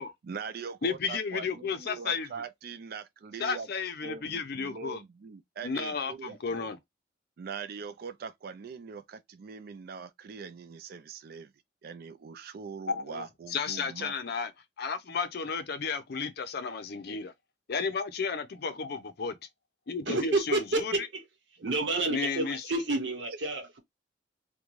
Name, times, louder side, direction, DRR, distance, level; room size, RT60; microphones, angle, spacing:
voice 1, 0.3-3.7 4.0-6.7 7.4-11.5 11.8-14.1, right 5 dB, 55° right, 0.4 m, -42 dB
voice 2, 0.8-2.3 3.4-5.0 5.6-6.8 12.9-13.2 13.5-14.5 14.8-17.3 17.7-19.4 19.9-21.0 22.1-22.6, left 5 dB, 60° left, 0.5 m, -33 dB
voice 3, 20.1-21.2 21.6-23.8, right 2 dB, 75° right, 0.9 m, -29 dB
2.4 x 2.2 x 3.1 m
head